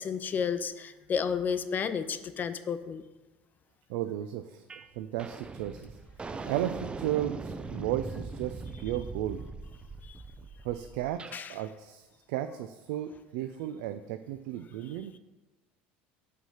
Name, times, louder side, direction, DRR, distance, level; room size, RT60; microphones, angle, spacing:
voice 1, 0.0-3.0 10.0-10.2 11.3-11.5, left 6 dB, 35° left, 12 dB, 0.5 m, -32 dB
voice 2, 3.9-4.6 5.0-6.0 6.5-9.4 10.6-15.1, right 12 dB, 75° right, 9 dB, 0.4 m, -34 dB
sound 1, 4.7-4.9 5.2-11.4, right 4 dB, 20° right, 0.5 m, -41 dB
6.0 x 5.7 x 5.6 m, 1.1 s
supercardioid pair, 90°, 5 cm